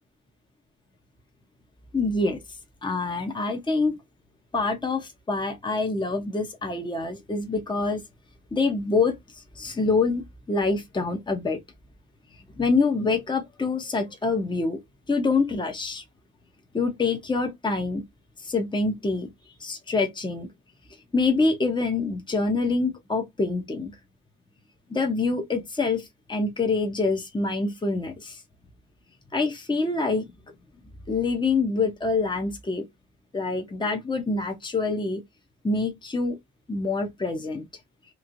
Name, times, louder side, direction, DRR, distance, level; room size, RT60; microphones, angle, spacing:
voice 1, 1.9-2.4 2.8-3.9 4.5-8.0 8.5-9.1 9.6-10.2 10.5-11.6 12.6-14.8 15.1-16.0 16.7-18.0 18.4-19.3 19.6-20.5 21.1-23.9 24.9-28.4 29.3-30.3 31.1-32.8 33.3-35.2 35.6-36.4 36.7-37.7, left 3 dB, 15° left, 0.9 m, -26 dB
3.1 x 2.7 x 2.6 m
cardioid pair, 90°, 30 cm